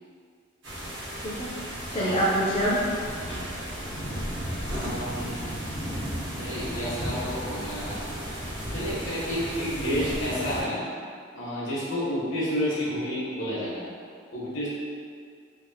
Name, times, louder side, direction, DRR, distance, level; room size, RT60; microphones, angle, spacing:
sound 1, 0.6-10.6, equal, 65° right, 0.9 m, -34 dB
voice 1, 1.2-2.8, right 1 dB, 30° left, -8 dB, 0.4 m, -26 dB
voice 2, 4.6-5.5 6.3-8.0 8.7-10.8 11.3-13.9 14.3-14.7, equal, 80° left, -7 dB, 0.8 m, -30 dB
2.8 x 2.4 x 2.6 m, 2.2 s
head